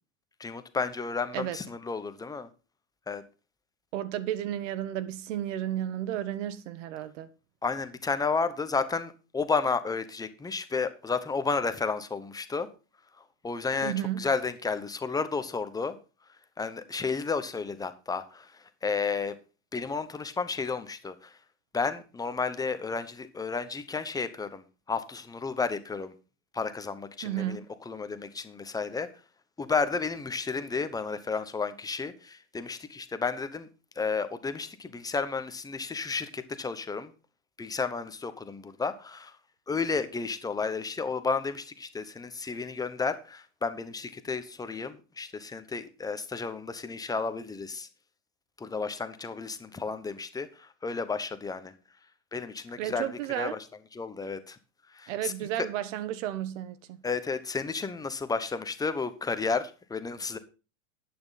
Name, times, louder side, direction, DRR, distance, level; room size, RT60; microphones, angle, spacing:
voice 1, 0.4-2.5 3.1-3.2 7.6-12.7 13.4-16.0 16.6-19.4 19.7-21.4 21.7-26.1 26.5-27.6 27.9-29.1 29.6-33.7 34.0-37.1 37.6-39.4 39.7-47.9 48.6-51.7 52.3-53.1 53.4-53.6 53.9-54.6 54.9-55.3 57.0-60.4, left 4 dB, 10° left, 1.0 m, -32 dB
voice 2, 3.9-7.3 13.8-14.3 27.2-27.7 52.8-53.6 55.1-57.0, right 12 dB, 60° right, 1.3 m, -33 dB
10.5 x 8.9 x 4.1 m
hypercardioid pair, 120°, 41 cm